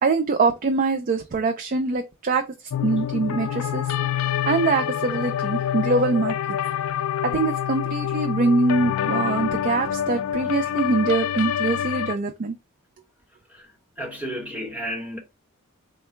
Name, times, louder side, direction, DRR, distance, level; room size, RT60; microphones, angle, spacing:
voice 1, 0.0-2.5 2.8-3.8 4.5-6.3 7.2-12.6, right 3 dB, 40° right, 0.4 m, -23 dB
sound 1, 2.7-12.2, left 10 dB, 80° left, 0.4 m, -26 dB
voice 2, 14.0-15.2, equal, 5° right, 1.1 m, -32 dB
3.6 x 2.2 x 4.3 m
head